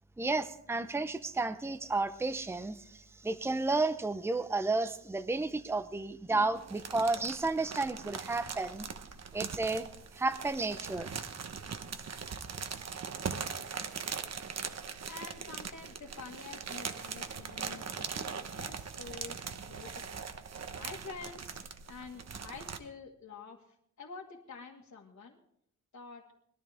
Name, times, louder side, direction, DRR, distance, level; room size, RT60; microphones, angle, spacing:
voice 1, 0.2-8.9 9.3-9.9 10.1-11.1, right 3 dB, 10° right, 10 dB, 0.7 m, -32 dB
sound 1, 6.6-22.8, right 6 dB, 60° right, 1.1 m, -41 dB
voice 2, 15.1-20.1 20.7-21.6 21.9-23.6 24.0-25.4 25.9-26.3, left 4 dB, 65° left, -2 dB, 2.0 m, -48 dB
21.0 x 13.0 x 3.6 m, 0.69 s
wide cardioid pair, 140°, 29 cm